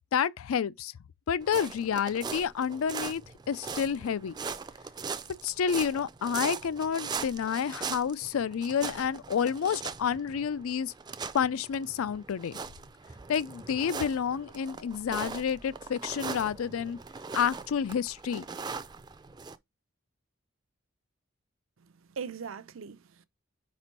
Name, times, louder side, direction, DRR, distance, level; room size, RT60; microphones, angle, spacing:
voice 1, 0.1-0.9 1.3-3.2 3.5-4.3 5.4-10.9 11.3-12.6 13.3-17.0 17.3-18.5, left 7 dB, 85° left, 0.4 m, -29 dB
sound 1, 1.4-19.6, right 5 dB, 20° right, 0.4 m, -40 dB
voice 2, 21.8-23.3, right 6 dB, 75° right, 0.5 m, -41 dB
5.1 x 4.2 x 4.5 m
head